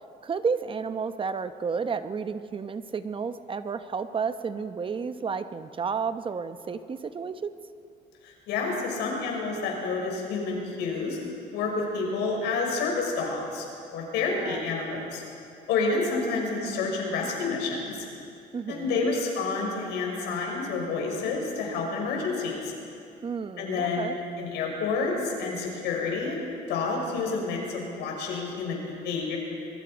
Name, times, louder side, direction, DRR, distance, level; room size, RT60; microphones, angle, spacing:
voice 1, 0.2-7.5 14.3-14.6 18.5-19.1 23.2-24.2, right 5 dB, 30° right, 10 dB, 0.8 m, -32 dB
voice 2, 8.2-11.2 11.5-13.7 13.9-15.2 15.7-18.0 18.7-22.7 23.6-24.1 24.4-26.4 26.7-29.4, left 4 dB, 85° left, 0 dB, 6.0 m, -29 dB
25.5 x 23.0 x 5.2 m, 2.5 s
cardioid pair, 110°, 17 cm